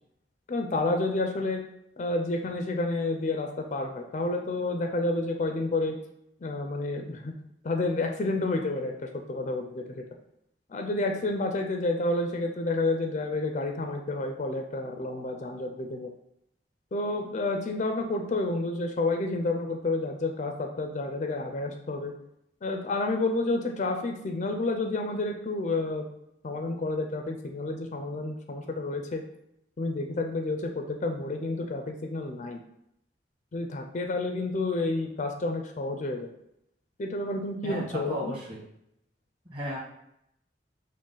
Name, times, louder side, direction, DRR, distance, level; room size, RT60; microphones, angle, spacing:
voice 1, 0.5-1.6 2.0-6.0 6.4-7.3 7.6-10.0 10.7-16.1 16.9-22.1 22.6-26.1 26.4-29.2 29.8-32.6 33.5-36.3 37.0-38.3, left 2 dB, 40° left, 4 dB, 0.4 m, -30 dB
voice 2, 37.6-38.6 39.5-39.8, equal, 30° right, -6 dB, 1.5 m, -34 dB
6.2 x 2.1 x 3.8 m, 0.79 s
head